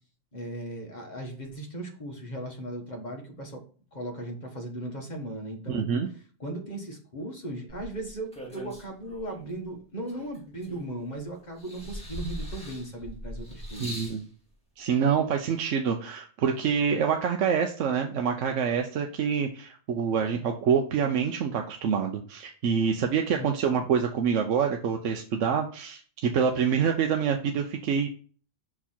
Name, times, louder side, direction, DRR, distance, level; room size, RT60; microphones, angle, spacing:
voice 1, 0.3-3.6 3.9-5.8 6.4-14.0 23.3-23.8, right 1 dB, 35° left, 1 dB, 1.4 m, -37 dB
voice 2, 5.7-6.1 13.8-14.2 14.8-28.1, right 7 dB, 70° right, 3 dB, 1.0 m, -26 dB
sound 1, 7.7-9.5 10.1-11.1 11.6-14.2 15.1-15.2, equal, 5° left, 2.2 m, -40 dB
5.8 x 4.5 x 4.3 m, 0.42 s
omnidirectional pair, 1.4 m